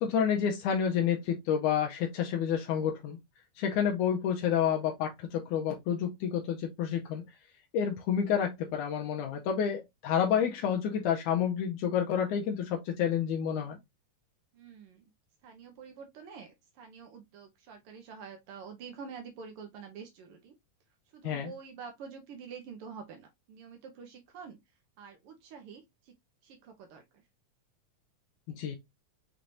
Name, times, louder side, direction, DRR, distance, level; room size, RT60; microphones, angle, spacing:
voice 1, 0.0-3.2 3.6-7.2 7.7-13.8 21.2-21.5 28.5-28.8, left 8 dB, 80° left, 2.2 m, -29 dB
voice 2, 14.5-15.1 15.4-20.5 21.1-24.6 25.0-26.1 26.4-27.2, right 6 dB, 75° right, 1.3 m, -47 dB
5.9 x 3.3 x 2.6 m
omnidirectional pair, 3.5 m